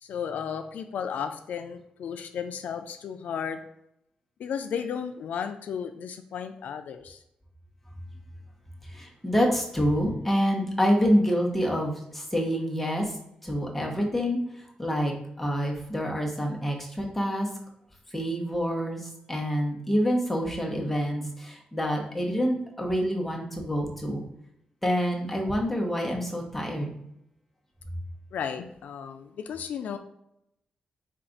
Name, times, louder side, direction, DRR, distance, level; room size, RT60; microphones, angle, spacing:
voice 1, 0.0-3.6 4.4-7.2 28.3-30.0, left 7 dB, 85° left, 8 dB, 0.3 m, -34 dB
voice 2, 8.9-13.0 13.4-14.4 14.8-15.1 15.4-17.5 18.1-19.0 19.3-24.2 24.8-26.9, equal, 5° left, -1 dB, 0.8 m, -27 dB
4.5 x 2.4 x 3.8 m, 0.79 s
wide cardioid pair, 155°, 3 cm